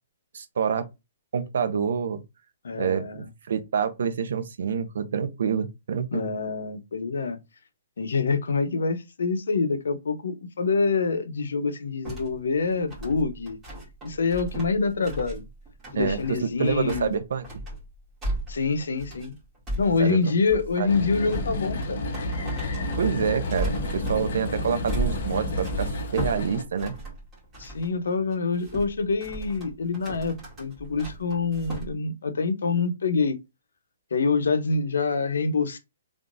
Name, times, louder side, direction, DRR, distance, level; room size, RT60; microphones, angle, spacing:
voice 1, 0.3-0.9 1.3-2.2 2.8-6.3 15.9-17.5 20.0-20.2 20.8-20.9 23.0-26.9, right 6 dB, 65° right, 0.7 m, -27 dB
voice 2, 2.6-3.3 6.1-7.4 8.0-13.6 14.0-15.4 15.9-17.2 18.5-19.3 19.8-22.1 27.6-33.4 34.1-35.8, left 4 dB, 90° left, 0.8 m, -26 dB
sound 1, 12.0-27.9 28.3-31.9, right 1 dB, 10° right, 2.1 m, -36 dB
sound 2, 20.9-26.6, left 1 dB, 50° left, 1.1 m, -30 dB
3.6 x 3.5 x 2.6 m
hypercardioid pair, 170°, 0 cm